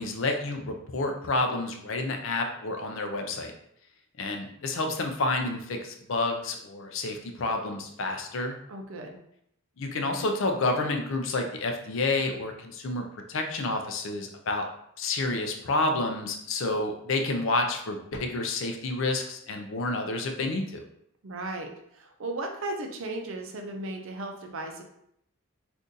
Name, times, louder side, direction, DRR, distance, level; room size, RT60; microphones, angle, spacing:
voice 1, 0.0-3.5 4.2-8.6 9.8-13.0 13.3-14.7 15.0-20.8, left 2 dB, 60° left, 4 dB, 0.5 m, -29 dB
voice 2, 8.7-9.2 21.2-24.8, right 2 dB, 65° right, 3 dB, 0.5 m, -36 dB
2.7 x 2.5 x 3.7 m, 0.72 s
head